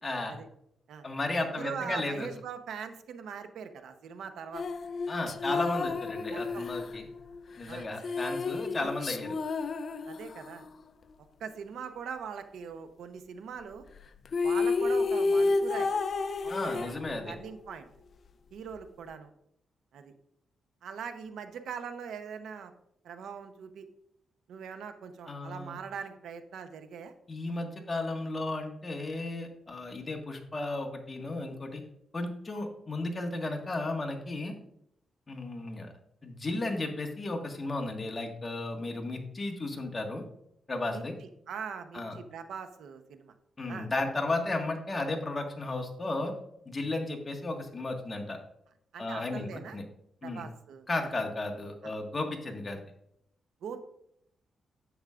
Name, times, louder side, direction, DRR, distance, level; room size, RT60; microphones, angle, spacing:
voice 1, 0.0-0.4 1.0-2.3 5.1-7.1 7.6-9.3 16.5-17.3 25.2-25.8 27.3-31.8 32.1-34.5 35.3-35.9 36.2-40.2 40.7-41.1 41.9-42.2 43.6-46.3 46.6-48.4 49.0-49.8 50.2-50.4 50.9-52.8, left 2 dB, 25° left, 2 dB, 1.6 m, -34 dB
voice 2, 1.4-4.6 5.3-5.7 6.3-6.7 7.7-7.9 10.1-10.7 11.4-13.8 14.4-15.9 16.4-17.0 17.3-17.9 18.5-19.3 19.9-20.1 20.8-22.7 23.0-23.9 24.5-27.1 40.9-41.0 41.5-43.3 43.7-43.9 48.9-49.8 50.2-50.9 51.8-51.9 53.6-53.8, right 7 dB, 85° right, 8 dB, 0.8 m, -41 dB
sound 1, 4.5-10.7 14.0-14.1 14.2-17.4, left 3 dB, 50° left, 0.5 m, -31 dB
10.0 x 8.1 x 2.5 m, 0.74 s
cardioid pair, 110°, 0 cm